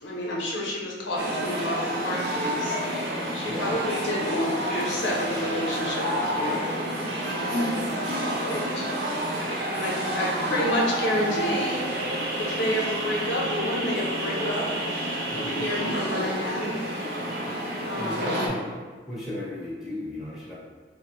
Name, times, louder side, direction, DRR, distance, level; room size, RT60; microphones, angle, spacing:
voice 1, 0.0-2.8 3.3-6.6 7.3-7.6 8.2-8.9 9.4-11.8 12.4-14.6 15.3-16.7 17.9-18.3, left 1 dB, 80° left, -3 dB, 0.7 m, -29 dB
sound 1, 1.2-18.5, right 1 dB, 60° right, 0.5 m, -29 dB
voice 2, 3.5-4.1 7.5-8.0 15.3-15.7 17.7-20.5, left 1 dB, ahead, -9 dB, 0.8 m, -36 dB
3.4 x 2.0 x 2.9 m, 1.4 s
head